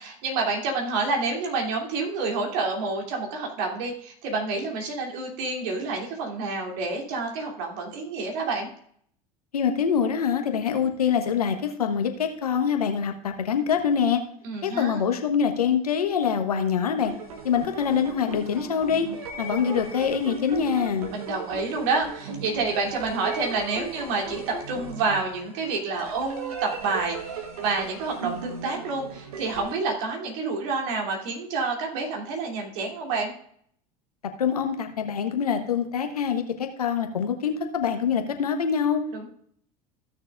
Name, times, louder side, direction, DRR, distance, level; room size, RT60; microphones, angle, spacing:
voice 1, 0.0-8.7 14.4-15.0 21.1-33.3 39.1-39.3, right 3 dB, 65° right, 1 dB, 2.9 m, -28 dB
voice 2, 9.5-14.2 14.6-17.1 17.4-19.1 19.4-21.1 34.4-39.0, left 7 dB, 85° left, 6 dB, 1.2 m, -25 dB
sound 1, 16.9-29.8, right 4 dB, 80° right, 1.4 m, -37 dB
15.5 x 6.7 x 2.5 m, 0.63 s
hypercardioid pair, 75°, 19 cm